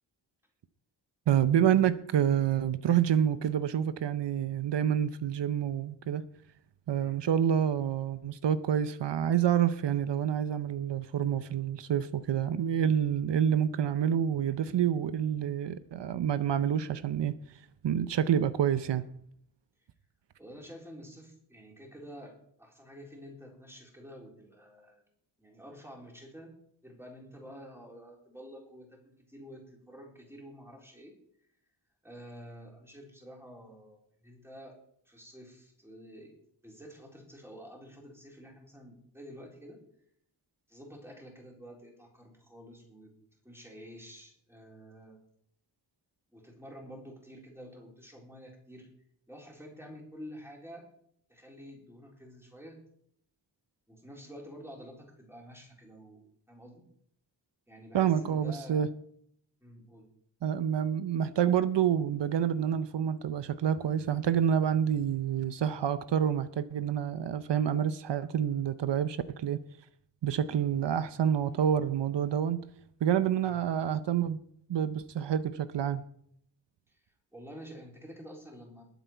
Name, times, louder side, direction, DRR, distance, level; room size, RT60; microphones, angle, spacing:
voice 1, 1.3-6.2 6.9-17.3 17.8-19.0 57.9-58.9 60.4-69.6 70.2-72.6 73.0-74.4 74.7-76.0, right 9 dB, 85° right, 0.7 m, -28 dB
voice 2, 20.4-25.0 25.4-26.5 26.8-31.2 32.0-34.8 35.1-36.3 36.6-39.8 40.7-43.1 43.4-45.2 46.3-48.9 49.3-50.9 51.3-52.8 53.9-56.8 57.7-58.8 59.6-60.1 73.4-73.6 76.9-77.0 77.3-78.9, equal, 5° right, 4.0 m, -49 dB
20.5 x 8.1 x 4.6 m
wide cardioid pair, 130°, 41 cm